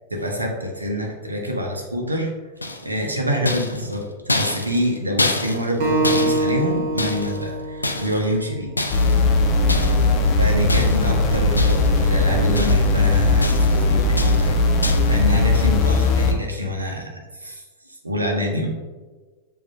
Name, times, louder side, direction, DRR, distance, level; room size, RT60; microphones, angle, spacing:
voice 1, 0.1-2.3 2.8-8.9 10.4-14.6 15.1-18.7, equal, 80° right, 1 dB, 0.8 m, -26 dB
sound 1, 2.6-3.1 3.5-7.5 7.8-8.4 8.8-9.2 9.7-10.1 10.7-11.2 11.6-12.0 12.3-13.0 13.4-13.8 14.2-14.5 14.8-15.2, left 2 dB, 80° left, 0.3 m, -27 dB
Acoustic guitar, 5.8-9.1, right 2 dB, 45° right, 0.8 m, -25 dB
sound 2, 8.9-16.3, left 2 dB, 35° left, 0.6 m, -18 dB
7.3 x 2.5 x 2.6 m, 1.3 s
figure-of-eight pair, 90°, 0 cm